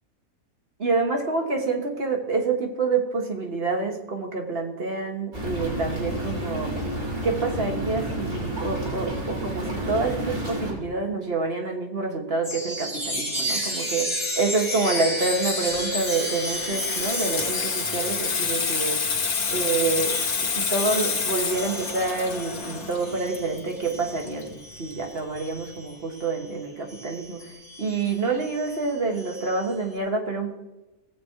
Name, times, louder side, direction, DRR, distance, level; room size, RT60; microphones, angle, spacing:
voice 1, 0.8-6.8 7.2-14.1 14.4-19.0 19.5-27.5 27.8-30.5, right 3 dB, 45° right, 1 dB, 1.9 m, -27 dB
sound 1, 5.3-10.7, right 1 dB, 80° right, 3.9 m, -30 dB
Chime, 12.4-26.4 26.9-29.7, left 1 dB, ahead, 5.1 m, -33 dB
Water tap faucet / Sink (filling or washing), 15.6-24.9 25.2-25.5, left 5 dB, 85° left, 1.7 m, -28 dB
18.5 x 7.4 x 4.7 m, 1.0 s
omnidirectional pair, 1.5 m